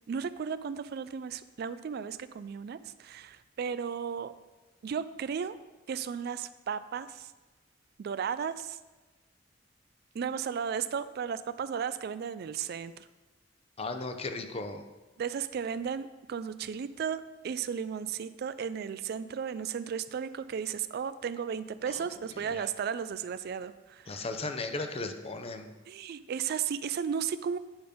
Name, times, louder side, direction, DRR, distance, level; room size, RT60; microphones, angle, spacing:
voice 1, 0.1-4.3 4.8-5.6 5.9-7.3 8.0-8.8 10.1-12.9 15.2-24.3 25.9-27.6, right 7 dB, 55° right, 14 dB, 0.3 m, -34 dB
voice 2, 13.8-14.8 21.9-22.1 24.1-25.7, left 3 dB, 30° left, 7 dB, 0.6 m, -36 dB
8.9 x 5.2 x 5.1 m, 1.2 s
head